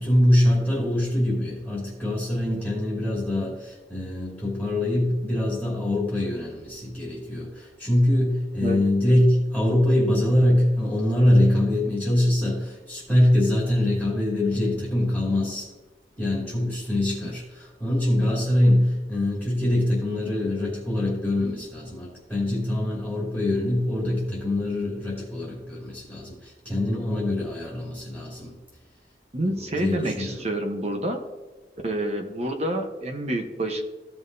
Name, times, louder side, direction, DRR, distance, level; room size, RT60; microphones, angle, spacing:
voice 1, 0.0-15.7 16.2-28.5 29.5-30.4, left 1 dB, 5° right, -6 dB, 2.6 m, -23 dB
voice 2, 29.3-31.3 31.8-33.8, right 1 dB, 40° right, 4 dB, 1.0 m, -28 dB
15.0 x 5.8 x 2.7 m, 1.2 s
head